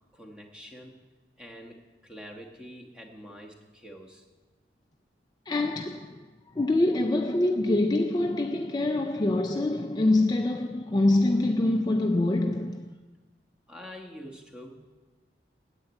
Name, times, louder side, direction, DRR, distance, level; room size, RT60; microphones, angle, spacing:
voice 1, 0.1-1.0 1.4-4.2 13.7-14.8, equal, 5° right, 1.3 m, -45 dB
voice 2, 5.5-6.2 6.6-12.9, left 2 dB, 25° left, 0.4 m, -25 dB
10.0 x 8.1 x 8.7 m
head